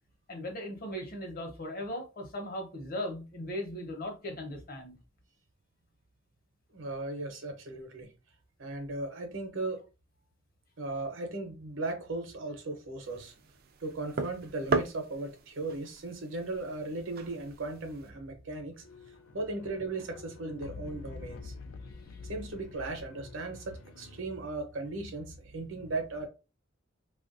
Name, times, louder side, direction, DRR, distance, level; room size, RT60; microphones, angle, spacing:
voice 1, 0.3-5.0, left 1 dB, 50° left, 0.9 m, -38 dB
voice 2, 6.7-8.1 8.6-9.8 10.8-13.3 13.8-18.8 19.3-21.5 22.2-26.3, right 2 dB, 75° right, 0.8 m, -37 dB
sound 1, 13.0-18.1, right 4 dB, 50° right, 0.4 m, -37 dB
sound 2, 18.8-24.2, left 3 dB, 75° left, 0.3 m, -47 dB
3.0 x 2.4 x 2.5 m
head